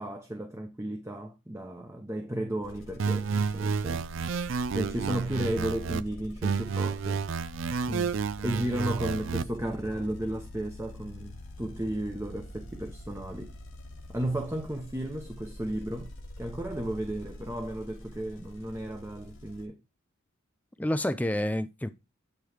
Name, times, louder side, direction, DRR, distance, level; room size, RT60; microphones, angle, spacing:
voice 1, 0.0-4.0 4.7-7.2 8.4-13.5 14.1-16.1 16.4-19.8, right 1 dB, 15° right, 0.8 m, -34 dB
sound 1, 2.6-19.7, left 1 dB, 70° left, 1.5 m, -45 dB
sound 2, 3.0-6.0 6.4-9.4, right 5 dB, 65° right, 0.4 m, -30 dB
voice 2, 20.8-21.9, left 1 dB, 5° left, 0.4 m, -29 dB
8.8 x 3.1 x 4.9 m
head